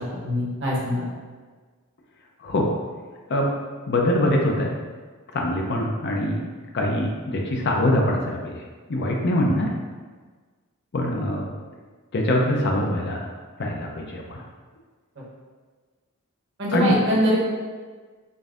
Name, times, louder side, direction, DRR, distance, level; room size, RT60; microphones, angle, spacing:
voice 1, 0.2-1.0 16.6-17.6, equal, 55° right, -5 dB, 1.0 m, -23 dB
voice 2, 3.9-4.7 5.3-6.4 6.7-8.6 8.9-9.7 10.9-11.5 12.1-13.3 13.6-14.4 16.7-17.0, left 1 dB, 50° left, 0 dB, 0.5 m, -23 dB
5.2 x 2.6 x 2.4 m, 1.4 s
head